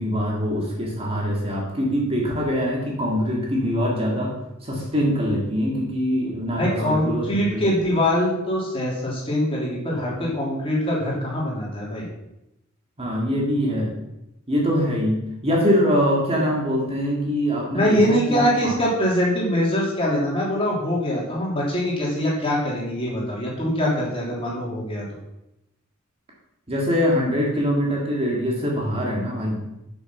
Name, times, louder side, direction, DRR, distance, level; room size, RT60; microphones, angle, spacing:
voice 1, 0.0-4.3 4.6-7.6 13.0-13.9 14.5-18.8 26.7-29.6, equal, 30° right, -2 dB, 2.0 m, -23 dB
voice 2, 6.6-12.1 17.7-25.0, equal, 25° left, -4 dB, 3.0 m, -23 dB
8.4 x 6.3 x 6.0 m, 0.88 s
head